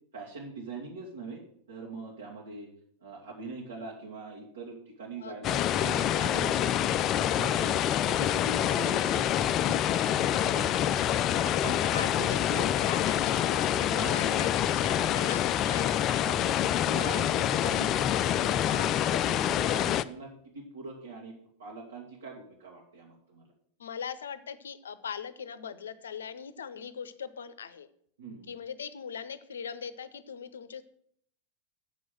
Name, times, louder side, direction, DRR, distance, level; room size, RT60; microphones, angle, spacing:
voice 1, 0.1-1.4 1.7-2.7 3.0-6.8 7.1-7.8 8.0-9.2 9.6-10.9 11.3-11.8 12.2-12.7 13.8-14.5 14.9-15.3 16.2-18.5 18.9-19.0 19.3-21.3 21.6-23.5 28.2-28.5, right 2 dB, 65° right, -3 dB, 1.9 m, -42 dB
voice 2, 5.2-5.6 11.9-16.2 18.7-19.0 23.8-27.9 28.5-30.8, left 7 dB, 65° left, 14 dB, 0.7 m, -40 dB
sound 1, 5.4-20.0, left 11 dB, 35° left, 0.4 m, -26 dB
8.4 x 6.2 x 7.5 m, 0.67 s
figure-of-eight pair, 90°, 0 cm